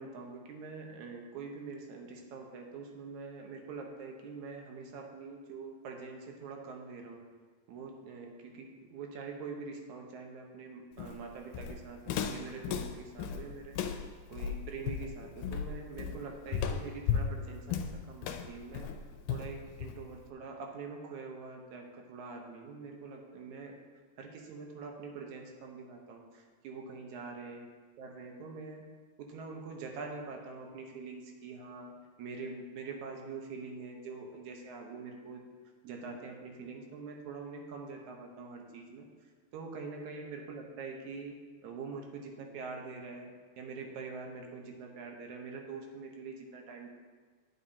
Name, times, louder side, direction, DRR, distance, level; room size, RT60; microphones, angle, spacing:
voice 1, 0.0-7.2 7.7-13.8 14.3-18.9 19.3-23.7 24.2-27.7 28.0-28.8 29.2-35.4 35.8-39.1 39.5-43.3 43.6-46.9, right 4 dB, 70° right, 2 dB, 2.4 m, -44 dB
Walk footsteps, 11.0-20.2, left 7 dB, 90° left, 2.2 m, -35 dB
10.5 x 9.2 x 2.8 m, 1.5 s
omnidirectional pair, 3.6 m